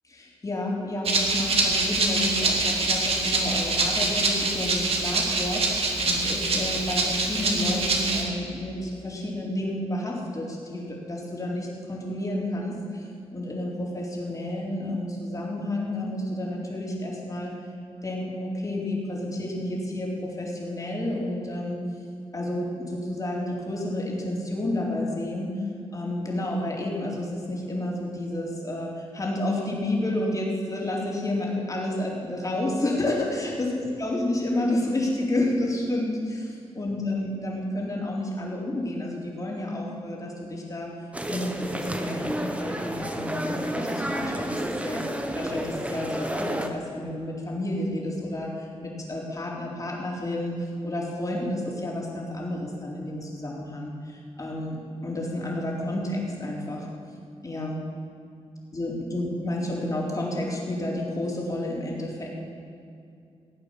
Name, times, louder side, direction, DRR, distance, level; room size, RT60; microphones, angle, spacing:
voice 1, 0.1-13.1 13.3-17.5 18.0-21.8 22.3-25.5 25.9-40.9 41.3-45.1 45.3-56.9 57.4-57.8 58.7-62.3, left 1 dB, 30° left, -3 dB, 4.0 m, -30 dB
Rattle (instrument), 1.0-8.2, right 3 dB, 65° right, 2.6 m, -25 dB
sound 1, 41.1-46.7, right 1 dB, 10° right, 1.3 m, -30 dB
17.5 x 9.0 x 7.5 m, 2.5 s
cardioid pair, 85°, 11 cm